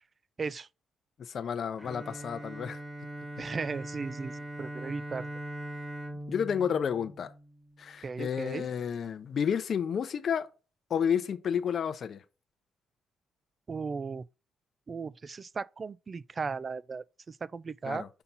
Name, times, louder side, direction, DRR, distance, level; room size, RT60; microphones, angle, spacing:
voice 1, 1.2-2.8 6.3-7.3 7.8-10.5 10.9-12.2 17.8-18.1, left 7 dB, 50° left, 0.6 m, -31 dB
Bowed string instrument, 1.8-8.0, right 1 dB, 10° right, 1.1 m, -41 dB
voice 2, 3.4-5.3 8.0-8.7 13.7-14.2 14.9-18.1, right 4 dB, 30° right, 0.3 m, -36 dB
5.8 x 5.6 x 4.0 m
cardioid pair, 110°, 0 cm